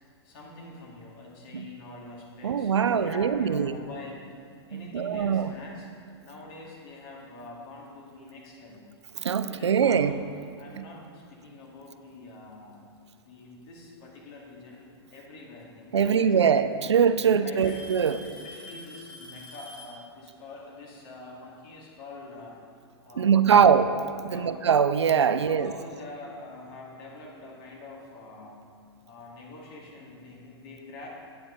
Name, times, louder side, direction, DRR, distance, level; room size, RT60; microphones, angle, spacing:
voice 1, 0.2-4.4 4.7-8.9 9.5-10.0 10.6-12.9 13.3-16.6 17.2-17.8 18.2-22.6 23.0-23.7 24.3-24.6 25.2-28.7 29.0-31.1, left 2 dB, 50° left, -3 dB, 2.2 m, -45 dB
voice 2, 2.4-3.8 4.7-5.5 9.2-10.1 10.8-10.9 15.9-18.3 23.2-23.8 24.2-25.7, right 7 dB, 85° right, 12 dB, 0.4 m, -22 dB
Alarm / Tick-tock, 6.1-6.3 7.2-7.3 8.1-8.2 9.9-10.0 11.2-11.3 12.5-13.0 14.7-14.8 16.1-16.2 16.5-17.0 17.6-20.1, left 1 dB, 35° left, 1.3 m, -46 dB
8.7 x 7.8 x 3.9 m, 2.3 s
hypercardioid pair, 110°, 14 cm